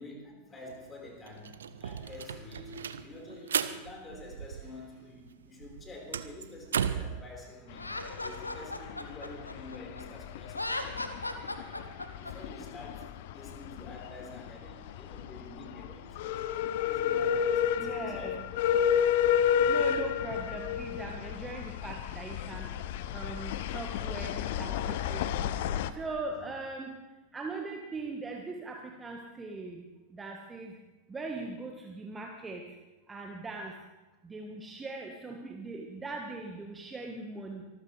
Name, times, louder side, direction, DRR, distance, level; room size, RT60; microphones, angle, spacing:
voice 1, 0.0-16.5 16.8-18.7 26.4-26.5, left 2 dB, 20° left, 0 dB, 4.9 m, -48 dB
sound 1, 0.7-0.8 1.1-5.0 5.3-7.2, right 8 dB, 65° right, 0.7 m, -35 dB
sound 2, 7.7-25.9, left 9 dB, 50° left, 0.7 m, -32 dB
Laughter, 7.8-10.0 10.5-12.3, left 2 dB, 85° left, 1.2 m, -37 dB
voice 2, 17.8-18.5 19.7-22.7 23.1-25.5 25.9-26.9 27.3-29.8 30.1-30.7 31.1-32.6 33.1-33.7 34.2-37.6, right 3 dB, 15° right, 1 dB, 1.5 m, -40 dB
24.5 x 14.5 x 3.4 m, 1.1 s
figure-of-eight pair, 90°, 0 cm